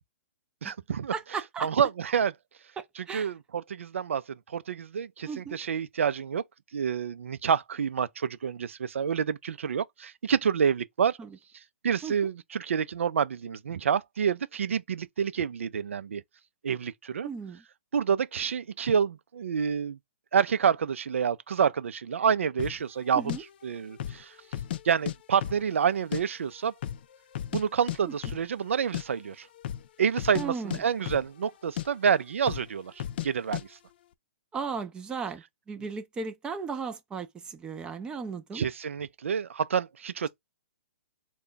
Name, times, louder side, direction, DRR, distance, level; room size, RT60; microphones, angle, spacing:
voice 1, 0.6-1.1 1.6-2.3 3.0-6.4 6.7-11.2 11.8-16.2 16.6-17.3 17.9-20.0 20.3-23.2 23.6-24.3 24.8-26.7 27.5-29.5 30.0-33.7 38.5-40.3, right 7 dB, 85° right, 0.5 m, -28 dB
voice 2, 1.1-1.7 2.8-3.3 5.3-5.6 11.2-11.3 12.0-12.1 17.2-17.6 23.1-23.4 30.3-30.8 34.5-38.7, right 5 dB, 10° right, 0.5 m, -36 dB
sound 1, 22.6-22.8 23.3-23.4 23.9-24.2 24.5-25.2 25.4-26.2 26.5-26.6 26.8-27.6 27.9-28.0 28.2-28.5 28.7-29.0 29.6-29.9 30.1-30.4 30.7-31.5 31.8-31.9 32.4-32.7 33.0-33.3 33.5-33.6, left 12 dB, 50° left, 0.4 m, -34 dB
3.3 x 2.2 x 3.8 m
hypercardioid pair, 150°, 7 cm